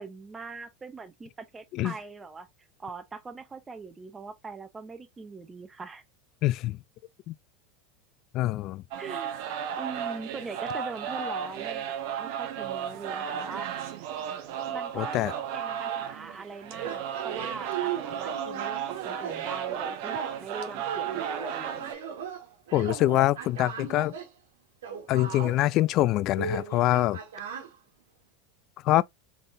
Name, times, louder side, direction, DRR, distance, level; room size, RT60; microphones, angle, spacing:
voice 1, 0.0-2.5 2.8-6.0 9.0-9.4 9.8-13.7 14.7-21.8, right 4 dB, 20° right, 0.8 m, -41 dB
voice 2, 6.4-6.8 7.3-7.4 8.3-8.8 14.9-15.3 22.7-24.1 25.1-27.2 28.8-29.0, left 16 dB, 50° left, 0.3 m, -24 dB
sound 1, 8.9-21.9, right 8 dB, 65° right, 0.9 m, -34 dB
sound 2, 15.6-16.0 16.8-20.4 20.8-24.3 24.8-27.7, right 7 dB, 80° right, 1.3 m, -38 dB
3.9 x 3.5 x 2.5 m
hypercardioid pair, 95°, 0 cm